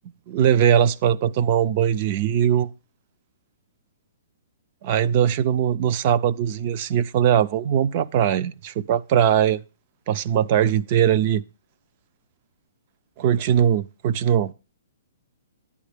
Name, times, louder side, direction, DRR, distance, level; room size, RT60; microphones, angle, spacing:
voice 1, 0.3-2.7 4.8-9.6 10.1-11.4 13.2-14.5, right 9 dB, 30° right, 0.4 m, -20 dB
10.5 x 8.3 x 3.4 m
hypercardioid pair, 175°, 0 cm